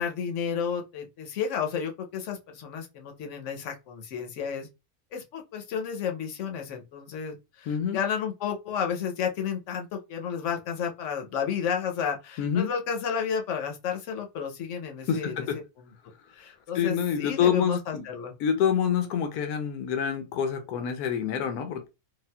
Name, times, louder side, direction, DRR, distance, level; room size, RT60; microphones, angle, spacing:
voice 1, 0.0-4.7 5.1-15.5 15.8-15.9 16.3-18.3, left 7 dB, 65° left, 0.9 m, -32 dB
voice 2, 7.7-8.0 12.4-12.7 15.1-15.6 16.7-18.1 18.4-21.9, left 8 dB, 85° left, 1.1 m, -27 dB
3.5 x 2.3 x 2.2 m
omnidirectional pair, 1.6 m